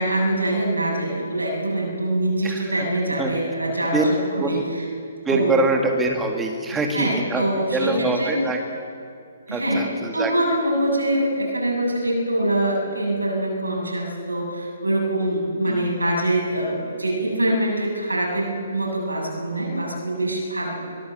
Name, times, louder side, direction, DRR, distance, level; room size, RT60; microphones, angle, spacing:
voice 1, 0.0-4.9 5.3-5.6 6.7-8.4 9.5-9.9 10.1-20.9, right 1 dB, 85° right, -1 dB, 7.7 m, -24 dB
voice 2, 5.3-7.4 7.7-8.6 9.5-10.3 15.7-15.9, right 3 dB, 10° right, 2 dB, 2.0 m, -24 dB
23.0 x 17.0 x 7.8 m, 2.3 s
figure-of-eight pair, 130°, 0 cm